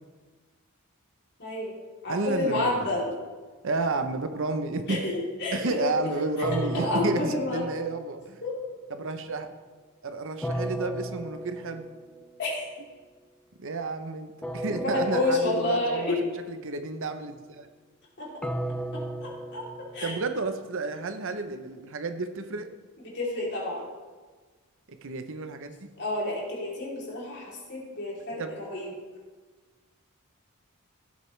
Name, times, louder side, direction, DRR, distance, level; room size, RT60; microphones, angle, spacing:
voice 1, 1.4-1.7 2.0-3.1 4.9-6.1 6.5-7.6 8.4-8.6 12.4-12.6 14.7-16.2 18.2-18.3 18.9-19.6 19.9-20.1 23.1-23.8 26.0-28.9, left 2 dB, 50° left, -4 dB, 3.2 m, -29 dB
voice 2, 2.1-2.9 3.6-5.1 5.5-8.4 8.9-9.5 10.0-11.9 13.6-16.2 16.5-17.7 20.0-22.7 24.9-25.8 28.4-28.5, right 3 dB, 60° right, 8 dB, 0.8 m, -31 dB
sound 1, 6.4-8.5 10.4-12.3 14.4-16.3 18.4-20.6, right 1 dB, 5° left, 0.4 m, -36 dB
15.5 x 8.3 x 3.3 m, 1.4 s
head